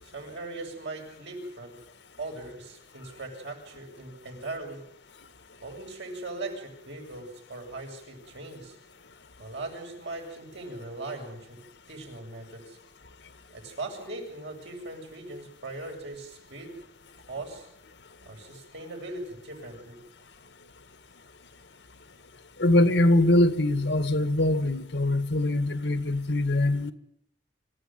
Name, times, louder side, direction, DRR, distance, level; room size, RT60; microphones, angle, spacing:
voice 1, 0.0-1.8 2.2-4.8 5.6-8.8 9.4-11.6 11.9-12.8 13.5-16.8 17.3-17.7 18.2-20.0, right 2 dB, 75° right, 8.0 m, -39 dB
voice 2, 22.6-26.9, left 1 dB, 80° left, 1.8 m, -23 dB
26.0 x 15.5 x 9.3 m
head